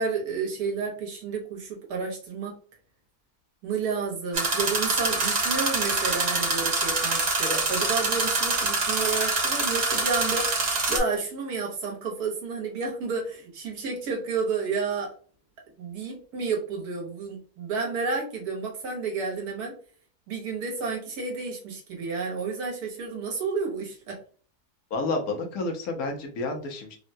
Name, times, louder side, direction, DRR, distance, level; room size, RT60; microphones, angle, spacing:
voice 1, 0.0-2.5 3.6-15.1 15.8-19.7 20.3-24.2, right 4 dB, 85° right, -1 dB, 1.5 m, -31 dB
sound 1, 4.3-11.0, right 3 dB, 45° right, 0.5 m, -25 dB
voice 2, 24.9-27.0, left 3 dB, 70° left, 3 dB, 1.2 m, -30 dB
3.6 x 2.2 x 2.6 m, 0.43 s
omnidirectional pair, 1.6 m